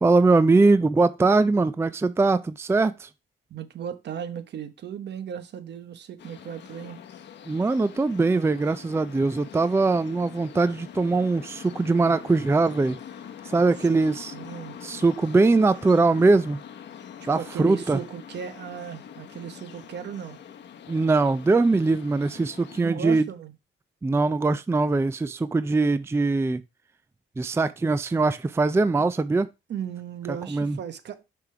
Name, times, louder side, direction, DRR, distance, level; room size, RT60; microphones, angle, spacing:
voice 1, 0.0-3.1 7.5-13.0 13.5-14.3 14.8-16.6 17.3-18.0 20.9-23.2 24.0-26.6 27.4-29.5 30.3-30.8, right 3 dB, 15° right, 0.4 m, -22 dB
voice 2, 3.5-7.0 13.9-14.0 14.3-14.8 17.2-20.4 22.8-23.5 29.7-31.2, right 8 dB, 60° right, 1.0 m, -36 dB
sound 1, 6.2-22.8, left 8 dB, 60° left, 1.0 m, -44 dB
6.0 x 3.4 x 5.7 m
cardioid pair, 90°, 20 cm